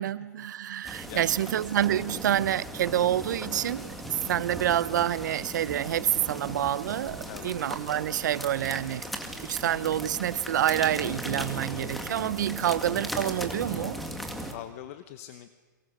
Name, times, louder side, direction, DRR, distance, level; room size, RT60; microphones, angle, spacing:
voice 1, 0.0-9.0 9.4-14.0, right 11 dB, 65° right, 18 dB, 0.8 m, -27 dB
sound 1, 0.8-14.5, equal, ahead, 2.0 m, -38 dB
voice 2, 1.1-1.6 7.3-7.6 14.5-15.6, left 12 dB, 45° left, 11 dB, 1.0 m, -43 dB
sound 2, 4.5-5.3 5.6-7.8 8.3-8.4 8.7-10.0, right 9 dB, 40° right, 3.5 m, -49 dB
30.0 x 23.5 x 6.6 m, 1.5 s
hypercardioid pair, 145°, 11 cm